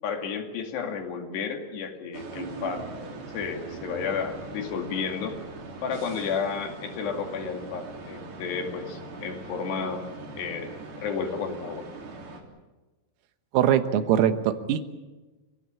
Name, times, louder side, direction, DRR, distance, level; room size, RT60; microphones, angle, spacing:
voice 1, 0.0-2.9 3.3-5.4 5.8-10.1 10.4-10.7 11.0-11.9, left 6 dB, 60° left, 4 dB, 4.1 m, -32 dB
sound 1, 2.1-12.4, right 3 dB, 50° right, 4.8 m, -41 dB
voice 2, 13.5-14.8, right 10 dB, 85° right, 9 dB, 3.9 m, -22 dB
27.0 x 17.0 x 8.6 m, 1.2 s
omnidirectional pair, 5.9 m